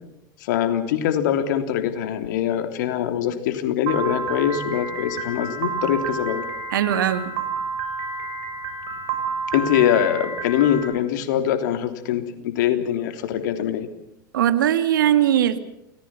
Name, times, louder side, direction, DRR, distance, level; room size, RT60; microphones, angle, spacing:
voice 1, 0.4-6.5 9.5-13.9, left 10 dB, 65° left, 8 dB, 3.3 m, -23 dB
Piano, 3.9-10.8, right 4 dB, 55° right, 7.9 m, -30 dB
voice 2, 6.7-7.3 14.3-15.6, right 11 dB, 75° right, 11 dB, 2.1 m, -19 dB
29.0 x 19.5 x 5.9 m, 0.81 s
hypercardioid pair, 85°, 11 cm